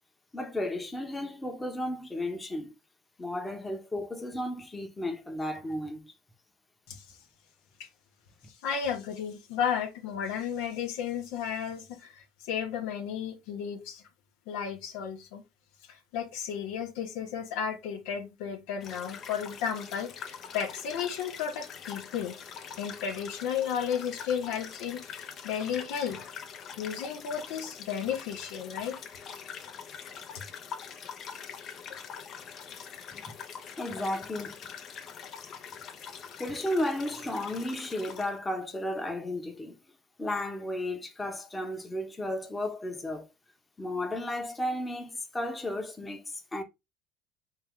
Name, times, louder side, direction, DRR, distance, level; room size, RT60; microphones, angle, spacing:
voice 1, 0.3-2.7 3.2-6.1 32.7-32.8 33.1-33.3 33.8-34.6 36.4-39.7 40.2-43.3 43.8-46.6, left 1 dB, 15° left, 1.1 m, -34 dB
voice 2, 6.9-7.2 7.8-7.9 8.5-14.0 14.5-15.4 15.9-22.4 22.8-26.3 26.8-29.0 30.3-30.4, left 8 dB, 75° left, 1.1 m, -33 dB
sound 1, 18.8-38.4, left 7 dB, 50° left, 0.9 m, -44 dB
4.6 x 2.9 x 3.7 m
supercardioid pair, 90°, 0 cm